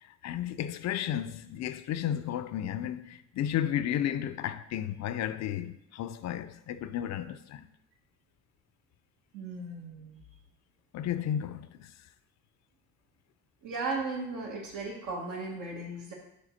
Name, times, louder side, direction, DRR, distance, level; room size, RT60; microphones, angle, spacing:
voice 1, 0.0-7.7 10.9-11.9, left 10 dB, 60° left, 0.4 m, -33 dB
voice 2, 9.3-10.2 13.6-16.1, right 3 dB, 85° right, 1.6 m, -36 dB
5.0 x 3.6 x 5.7 m
cardioid pair, 90°, 30 cm